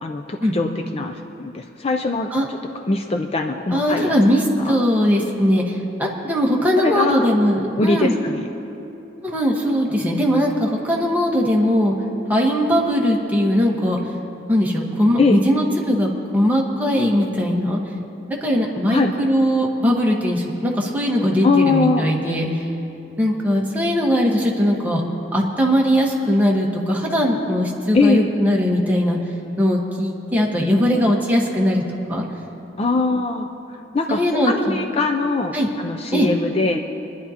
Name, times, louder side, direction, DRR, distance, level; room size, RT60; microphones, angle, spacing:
voice 1, 0.0-1.1 1.4-2.3 2.9-4.1 4.6-4.8 6.8-7.3 7.8-8.5 15.2-15.4 18.9-19.1 21.4-22.3 27.9-28.3 32.8-33.5 33.9-36.8, left 3 dB, 30° left, 4 dB, 0.4 m, -21 dB
voice 2, 3.7-8.1 9.2-11.9 12.3-14.0 14.5-17.8 18.3-22.5 23.2-25.0 25.3-29.2 29.6-31.8 32.1-32.2 34.1-34.8 35.5-35.7 36.1-36.3, equal, 10° right, -2 dB, 1.3 m, -19 dB
24.5 x 10.5 x 2.9 m, 2.9 s
head